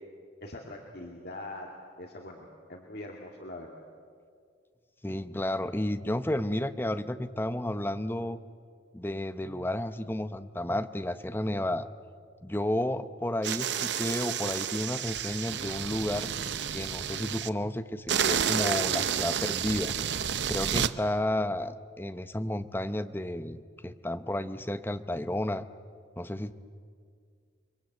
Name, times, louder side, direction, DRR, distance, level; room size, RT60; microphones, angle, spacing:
voice 1, 0.4-1.7 2.0-3.7, left 1 dB, 55° left, 0 dB, 2.4 m, -42 dB
voice 2, 5.0-8.4 8.9-11.9 12.4-16.3 16.7-19.9 20.5-25.7 26.2-26.5, left 1 dB, 10° left, 10 dB, 0.7 m, -32 dB
sound 1, 13.4-17.5 18.1-20.9, right 8 dB, 65° right, 0.7 m, -30 dB
30.0 x 23.0 x 8.0 m, 2.1 s
head